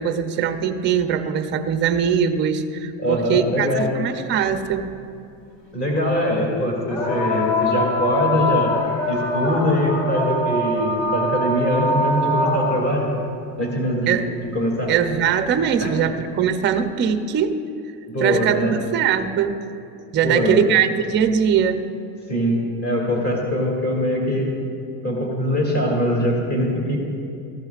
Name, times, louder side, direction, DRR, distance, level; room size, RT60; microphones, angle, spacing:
voice 1, 0.0-4.9 14.1-14.3 14.9-17.6 18.2-19.5 20.1-21.9, right 8 dB, 25° right, 8 dB, 0.5 m, -21 dB
voice 2, 3.0-3.9 5.7-8.7 9.1-13.1 13.6-14.2 14.5-14.9 15.8-15.9 18.1-18.8 20.2-20.6 22.3-24.5 25.0-27.0, equal, 30° left, -2 dB, 2.4 m, -22 dB
sound 1, 4.7-4.8 6.9-13.0 14.5-14.6 15.4-15.5, left 1 dB, 60° left, 2.6 m, -23 dB
17.5 x 14.5 x 2.4 m, 2.5 s
supercardioid pair, 140°, 50 cm